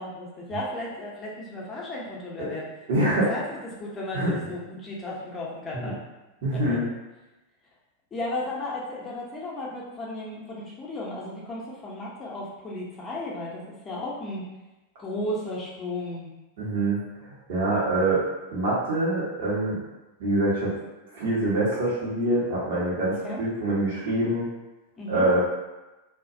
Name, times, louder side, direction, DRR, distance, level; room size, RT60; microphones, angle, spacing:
voice 1, 0.0-2.7 3.3-3.4 3.8-6.0 6.5-6.8 8.1-14.4 15.0-16.3 23.1-23.4 25.0-25.3, left 1 dB, 20° left, -4 dB, 0.6 m, -34 dB
voice 2, 2.9-3.3 4.1-4.3 5.7-5.9 6.4-6.8 16.6-18.2 18.5-19.8 20.2-20.7 21.1-24.5 25.1-25.4, right 1 dB, 55° right, -7 dB, 0.8 m, -25 dB
2.3 x 2.1 x 2.6 m, 1.1 s
figure-of-eight pair, 90°, 0 cm